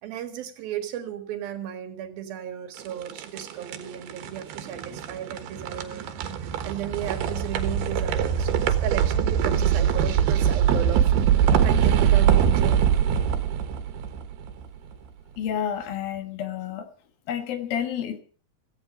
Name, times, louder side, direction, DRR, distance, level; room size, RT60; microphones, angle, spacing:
voice 1, 0.0-6.1 6.6-11.1 11.4-12.8, right 10 dB, 70° right, 8 dB, 3.4 m, -35 dB
sound 1, 2.8-14.9, right 8 dB, 85° right, 3.4 m, -23 dB
voice 2, 15.4-16.9 17.3-18.2, left 9 dB, 70° left, 9 dB, 3.2 m, -30 dB
17.0 x 15.0 x 5.2 m, 0.43 s
omnidirectional pair, 4.4 m